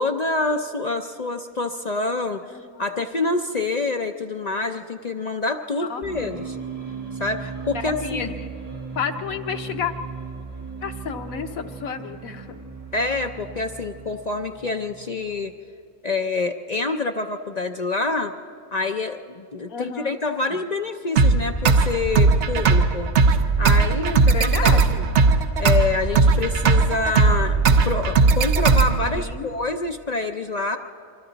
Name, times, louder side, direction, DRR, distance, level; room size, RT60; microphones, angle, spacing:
voice 1, 0.0-6.6 7.2-8.3 12.9-15.5 16.0-18.3 18.7-23.1 23.6-24.5 25.6-30.8, left 3 dB, 50° left, 5 dB, 0.5 m, -26 dB
voice 2, 2.5-2.9 5.8-6.3 7.7-8.4 8.9-9.9 10.8-12.6 19.7-20.2 20.5-20.6 24.3-25.0 29.1-29.5, left 6 dB, 85° left, 7 dB, 1.4 m, -31 dB
sound 1, 6.0-15.6, right 5 dB, 25° right, 1.7 m, -37 dB
sound 2, 21.2-29.2, right 4 dB, 60° right, 1.1 m, -18 dB
27.5 x 24.0 x 4.0 m, 2.4 s
omnidirectional pair, 1.4 m